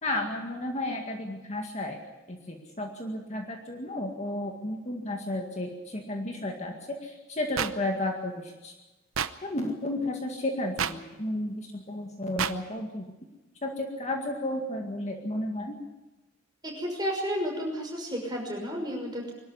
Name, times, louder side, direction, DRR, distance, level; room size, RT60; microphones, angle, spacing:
voice 1, 0.0-2.0 2.3-6.8 7.0-8.7 9.4-13.1 13.6-15.8, left 1 dB, 35° left, 2 dB, 2.0 m, -33 dB
sound 1, 7.6-7.7 9.1-9.3 10.8-10.9 12.4-12.5, right 8 dB, 85° right, 0.8 m, -27 dB
voice 2, 16.6-19.3, equal, 20° right, 0 dB, 6.0 m, -32 dB
23.0 x 12.5 x 9.7 m, 1.1 s
head